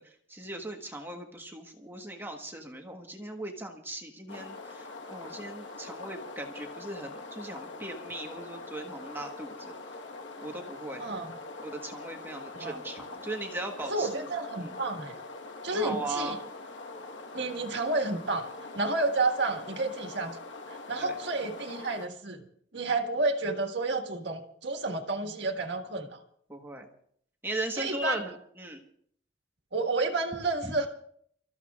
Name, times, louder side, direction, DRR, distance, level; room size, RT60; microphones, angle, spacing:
voice 1, 0.0-9.7 10.4-11.0 11.6-14.3 14.6-14.7 15.7-16.3 21.0-21.2 26.5-26.9 27.4-28.8 30.6-30.7, right 1 dB, 10° right, 2 dB, 1.3 m, -38 dB
sound 1, 4.3-22.1, left 3 dB, 75° left, 1.3 m, -43 dB
voice 2, 11.0-11.3 12.6-12.8 13.9-15.1 15.6-16.4 17.3-18.5 18.7-20.4 20.7-22.4 22.7-26.2 27.8-28.2 29.7-30.9, right 3 dB, 65° right, 4 dB, 1.7 m, -30 dB
30.0 x 14.0 x 2.4 m, 0.64 s
head